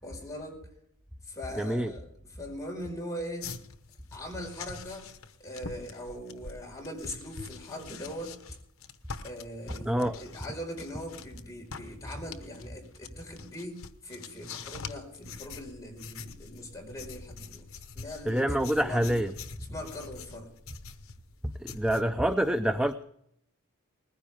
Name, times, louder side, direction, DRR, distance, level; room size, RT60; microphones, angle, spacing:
voice 1, 0.0-0.6 1.2-3.5 4.1-5.1 5.4-8.3 9.2-17.6 17.9-18.5 18.8-19.1 19.7-20.5, equal, 15° left, 0 dB, 5.1 m, -41 dB
voice 2, 1.6-1.9 9.9-10.2 18.3-19.3 21.6-22.9, right 1 dB, 5° right, 9 dB, 0.5 m, -26 dB
sound 1, 3.4-11.4 11.7-22.0, left 5 dB, 65° left, 1.1 m, -45 dB
20.0 x 15.0 x 3.6 m, 0.74 s
head